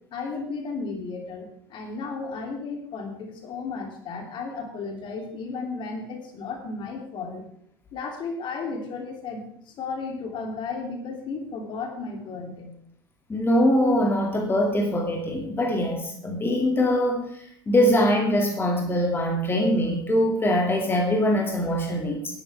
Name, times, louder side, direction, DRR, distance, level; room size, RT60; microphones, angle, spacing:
voice 1, 0.1-7.4 7.9-12.7, left 4 dB, 45° left, 3 dB, 3.2 m, -34 dB
voice 2, 13.3-17.3 17.7-22.2, left 1 dB, 20° left, 1 dB, 2.6 m, -22 dB
18.5 x 10.5 x 3.6 m, 0.65 s
figure-of-eight pair, 70°, 12 cm